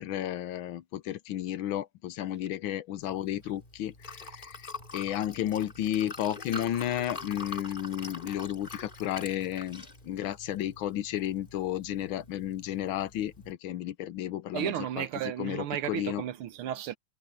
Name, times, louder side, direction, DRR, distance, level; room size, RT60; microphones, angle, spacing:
voice 1, 0.0-15.1 15.4-16.2, left 12 dB, 75° left, 1.5 m, -33 dB
Liquid, 3.0-13.5, left 3 dB, 25° left, 2.5 m, -45 dB
voice 2, 14.5-17.0, right 11 dB, 90° right, 1.9 m, -33 dB
omnidirectional pair, 2.3 m